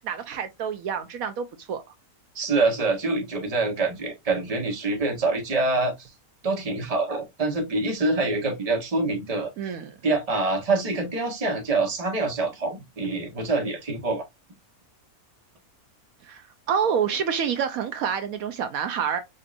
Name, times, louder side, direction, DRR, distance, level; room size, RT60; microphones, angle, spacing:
voice 1, 0.0-1.8 9.6-9.9 16.2-19.2, right 7 dB, 75° right, 1.0 m, -28 dB
voice 2, 2.3-6.1 6.4-9.8 10.0-14.2, right 3 dB, 25° right, 1.1 m, -25 dB
5.2 x 2.6 x 2.5 m
omnidirectional pair, 1.6 m